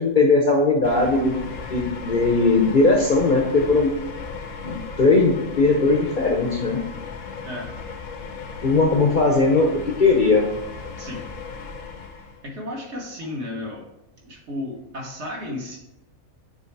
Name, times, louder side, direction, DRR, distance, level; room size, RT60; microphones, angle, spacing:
voice 1, 0.0-1.4 1.7-3.9 4.6-6.8 8.6-10.5, left 3 dB, 45° left, 1 dB, 0.7 m, -19 dB
sound 1, 0.8-12.4, left 5 dB, 85° left, 1.3 m, -36 dB
voice 2, 12.4-13.9 14.2-15.8, left 1 dB, 55° right, -1 dB, 1.5 m, -33 dB
7.0 x 3.2 x 4.6 m, 0.87 s
omnidirectional pair, 1.4 m